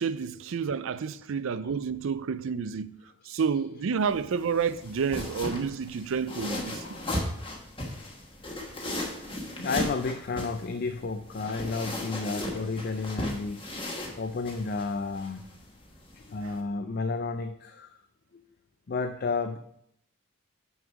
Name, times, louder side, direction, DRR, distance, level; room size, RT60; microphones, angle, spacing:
voice 1, 0.0-2.9 3.3-6.8, right 6 dB, 65° right, 0.4 m, -29 dB
sound 1, 4.0-16.6, left 1 dB, 25° left, 1.2 m, -37 dB
voice 2, 6.6-7.2 9.6-13.6 14.2-15.5 16.1-18.0 18.9-19.6, left 4 dB, 45° left, 0.4 m, -32 dB
6.3 x 5.3 x 5.9 m
head